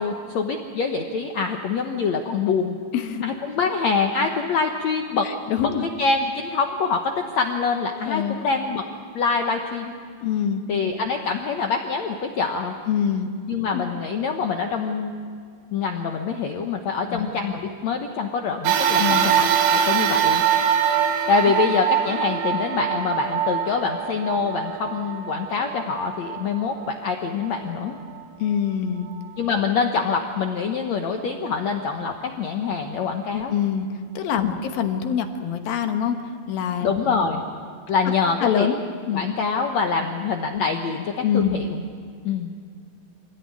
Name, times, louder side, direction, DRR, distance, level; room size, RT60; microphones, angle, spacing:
voice 1, 0.0-2.8 3.2-5.3 5.6-5.7 6.0-8.8 9.1-9.9 10.7-12.8 13.5-15.1 15.7-20.4 21.3-28.0 29.4-33.5 34.4-34.6 36.8-37.5 37.9-38.7 39.1-41.8 42.2-42.5, left 5 dB, 90° left, 4 dB, 1.5 m, -25 dB
voice 2, 5.2-5.9 8.1-8.4 10.2-10.6 12.9-13.3 13.7-13.9 17.1-17.3 19.0-19.3 28.4-29.1 33.3-33.9 34.1-36.2 36.5-37.2 38.4-38.8 39.1-39.3 40.0-40.1 41.2-41.6, left 8 dB, 65° left, 6 dB, 2.9 m, -25 dB
sound 1, 18.7-27.3 27.9-28.0 29.1-29.2, right 8 dB, 80° right, 3.6 m, -23 dB
26.0 x 17.5 x 9.6 m, 2.2 s
omnidirectional pair, 4.9 m